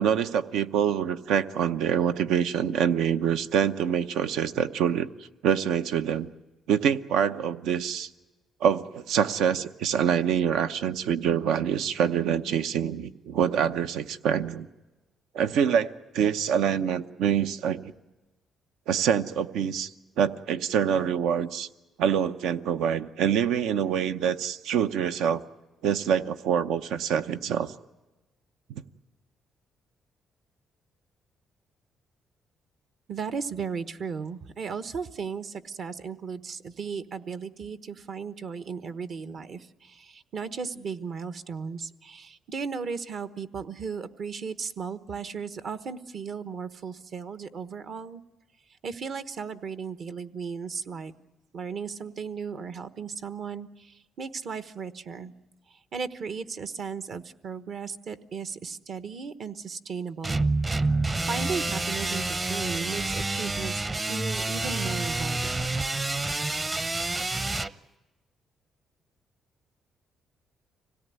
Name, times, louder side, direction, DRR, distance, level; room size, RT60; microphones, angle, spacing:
voice 1, 0.0-5.1 5.4-6.3 6.7-8.1 8.6-14.7 15.3-17.9 18.9-19.9 20.2-21.7 22.0-25.4 25.8-27.7, right 8 dB, 90° right, 10 dB, 0.8 m, -25 dB
voice 2, 33.1-48.2 48.8-51.1 51.5-55.3 55.7-60.5 61.2-65.7, right 5 dB, 60° right, 11 dB, 1.2 m, -36 dB
sound 1, 60.2-67.7, right 2 dB, 25° right, 0.8 m, -28 dB
25.5 x 17.5 x 9.4 m, 1.1 s
cardioid pair, 90°, 0 cm